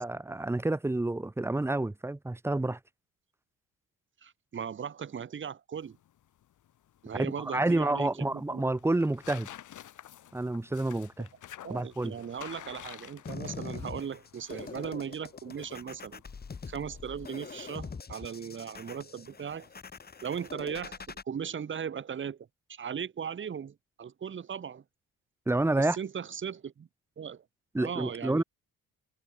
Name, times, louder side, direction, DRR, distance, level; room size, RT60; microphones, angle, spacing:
voice 1, 0.0-2.8 7.1-9.5 10.3-11.3 11.7-12.2 25.5-26.0 27.7-28.4, right 2 dB, 10° right, 0.9 m, -29 dB
voice 2, 4.2-6.0 7.0-8.6 11.6-16.2 16.7-19.7 20.2-22.4 22.7-24.8 25.8-26.9 27.2-27.4 27.8-28.4, right 7 dB, 35° right, 1.5 m, -38 dB
sound 1, 5.8-18.0, left 11 dB, 65° left, 2.7 m, -51 dB
sound 2, 13.3-21.2, left 5 dB, 30° left, 2.8 m, -43 dB
cardioid pair, 115°, 33 cm